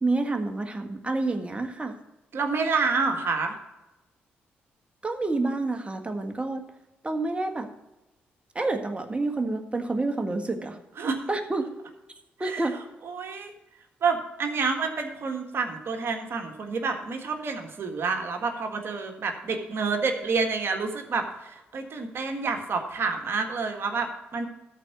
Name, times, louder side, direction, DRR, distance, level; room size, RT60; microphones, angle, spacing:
voice 1, 0.0-2.0 5.0-6.6 7.0-7.7 8.5-10.8 11.3-11.7 12.4-12.8, right 2 dB, 25° right, 6 dB, 1.6 m, -28 dB
voice 2, 2.3-3.6 11.0-11.2 12.4-12.6 13.0-13.5 14.0-24.5, right 4 dB, 55° right, 5 dB, 1.6 m, -28 dB
13.5 x 4.6 x 6.6 m, 1.0 s
hypercardioid pair, 45°, 5 cm